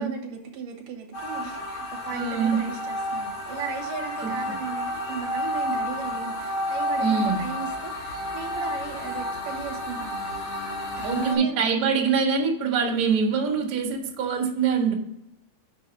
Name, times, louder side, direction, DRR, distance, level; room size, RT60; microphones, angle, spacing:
voice 1, 0.0-10.4 11.0-11.7, right 7 dB, 65° right, 0 dB, 2.6 m, -37 dB
sound 1, 1.1-11.4, left 1 dB, 45° left, 3.5 m, -31 dB
voice 2, 2.1-2.6 4.2-4.5 7.0-7.4 11.0-14.9, right 5 dB, 90° right, -2 dB, 0.8 m, -24 dB
6.6 x 5.4 x 6.9 m, 0.81 s
omnidirectional pair, 4.6 m